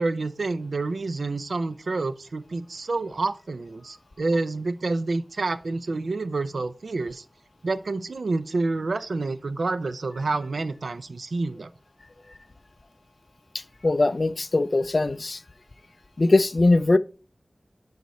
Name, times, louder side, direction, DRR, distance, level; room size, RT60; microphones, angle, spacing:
voice 1, 0.0-7.2 7.6-11.7, right 3 dB, 85° right, 0.5 m, -28 dB
voice 2, 13.5-15.4 16.2-17.0, left 2 dB, 55° left, 0.4 m, -21 dB
10.5 x 4.1 x 3.1 m
wide cardioid pair, 75°, 0 cm